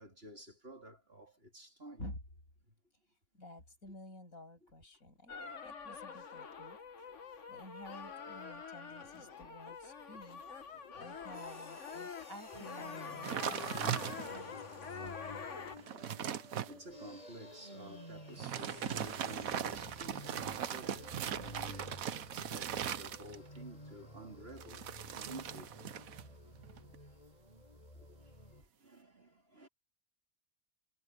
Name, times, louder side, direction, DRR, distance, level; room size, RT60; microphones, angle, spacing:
voice 1, 0.0-2.0 2.7-2.8 8.9-9.3 10.1-11.1 13.0-13.3 14.5-14.7 15.2-16.4 16.7-24.8 25.1-26.1 27.0-27.1 27.9-28.2 28.5-29.7, right 2 dB, 45° right, 4.1 m, -53 dB
voice 2, 3.3-5.3 5.6-6.8 7.5-10.4 10.9-14.6, left 1 dB, 75° left, 8.6 m, -51 dB
sound 1, 5.3-15.8, left 6 dB, 60° left, 1.7 m, -46 dB
sound 2, 11.3-28.6, left 1 dB, 25° left, 4.6 m, -51 dB
sound 3, 13.2-14.5 15.1-15.2 15.6-16.7 18.3-23.6 24.6-26.3 26.6-27.0, right 9 dB, 75° right, 1.3 m, -39 dB
omnidirectional pair, 1.5 m